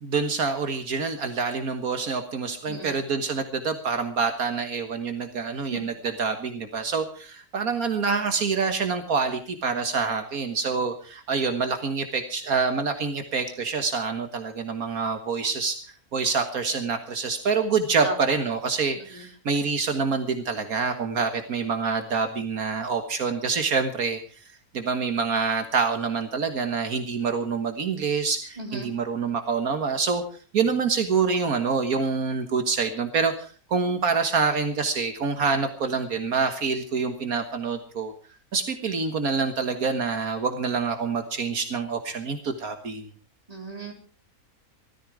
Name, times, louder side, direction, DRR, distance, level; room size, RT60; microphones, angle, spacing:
voice 1, 0.0-15.8 16.1-24.2 24.7-30.2 30.5-38.1 38.5-43.1, right 5 dB, 75° right, 7 dB, 1.9 m, -26 dB
voice 2, 2.6-3.0 5.7-5.8 18.0-18.2 19.0-19.3 28.6-28.9 43.5-43.9, right 2 dB, 25° right, 2 dB, 3.8 m, -35 dB
17.5 x 13.5 x 5.0 m, 0.39 s
omnidirectional pair, 1.5 m